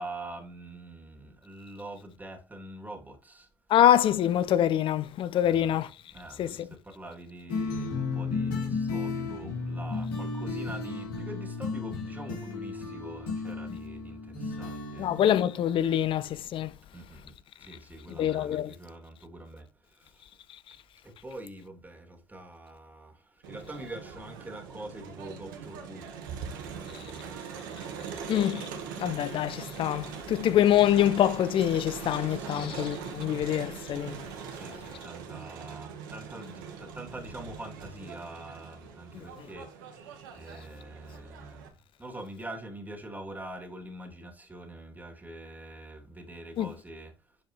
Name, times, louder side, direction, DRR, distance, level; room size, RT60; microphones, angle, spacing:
voice 1, 0.0-3.5 5.4-5.7 6.1-15.1 16.9-17.3 17.7-19.6 21.0-23.1 23.5-26.1 26.4-28.2 32.3-32.6 34.5-39.7 40.3-41.7 42.0-47.1, right 1 dB, 15° right, 2.7 m, -44 dB
voice 2, 3.7-5.9 6.4-6.7 15.0-16.7 18.2-18.7 28.3-28.7 29.0-34.2 39.1-39.2 46.6-46.7, left 11 dB, 55° left, 0.6 m, -25 dB
sound 1, 7.5-15.9, left 4 dB, 75° left, 3.4 m, -34 dB
Crowd, 23.4-41.7, right 6 dB, 80° right, 1.4 m, -41 dB
11.0 x 4.7 x 3.2 m
hypercardioid pair, 55°, 11 cm